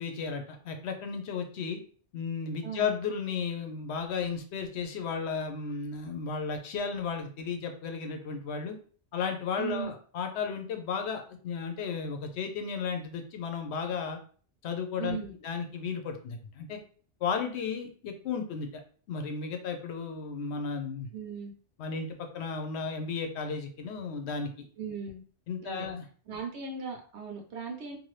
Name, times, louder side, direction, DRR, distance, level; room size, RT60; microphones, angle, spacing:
voice 1, 0.0-1.8 2.1-8.8 9.1-14.2 14.6-15.2 15.4-16.8 17.2-18.8 19.1-21.1 21.8-24.5 25.5-26.0, left 5 dB, 75° left, 5 dB, 0.8 m, -34 dB
voice 2, 2.6-3.0 9.6-9.9 15.0-15.3 21.1-21.5 24.8-25.2 25.6-25.9 26.3-28.0, right 6 dB, 75° right, 1 dB, 1.0 m, -38 dB
2.6 x 2.5 x 3.1 m, 0.43 s
omnidirectional pair, 1.2 m